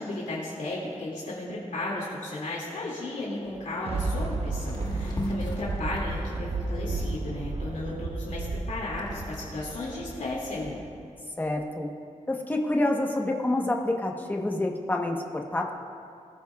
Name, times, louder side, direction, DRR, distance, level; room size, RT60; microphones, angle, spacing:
voice 1, 0.0-10.8, left 2 dB, 85° left, -6 dB, 2.3 m, -34 dB
Thunder, 3.4-11.0 11.4-11.5, right 3 dB, 55° right, 0.8 m, -33 dB
sound 1, 3.7-3.8 4.2-4.4 4.7-7.4 7.9-10.4, left 1 dB, 35° left, 1.4 m, -38 dB
voice 2, 11.4-11.9 12.3-15.7, left 1 dB, 15° left, 1 dB, 1.0 m, -27 dB
20.0 x 13.5 x 2.4 m, 2.3 s
wide cardioid pair, 175°, 13 cm